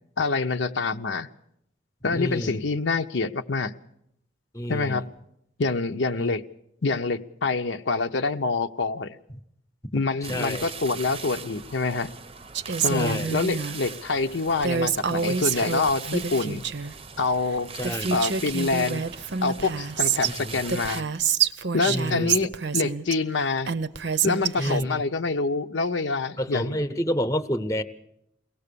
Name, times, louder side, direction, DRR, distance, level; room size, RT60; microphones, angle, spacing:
voice 1, 0.2-1.3 2.0-3.7 4.7-5.1 5.6-6.4 6.8-9.2 9.9-12.1 12.8-16.6 17.2-17.7 18.1-19.0 19.4-21.0 21.7-23.7 24.2-26.8, left 3 dB, 75° left, 7 dB, 0.8 m, -26 dB
voice 2, 2.1-2.6 4.5-5.1 6.2-6.3 10.2-10.7 12.9-13.4 17.8-18.1 20.2-20.6 21.9-22.4 24.6-25.0 26.4-27.8, equal, 15° left, 12 dB, 0.9 m, -29 dB
sound 1, 10.2-21.0, right 5 dB, 30° right, 0.7 m, -40 dB
Female speech woman speaking, 12.5-13.8 14.6-16.9 17.5-17.6 17.8-20.3 20.7-23.1 23.7-24.8, right 6 dB, 65° right, 0.7 m, -27 dB
23.0 x 18.0 x 6.8 m, 0.75 s
head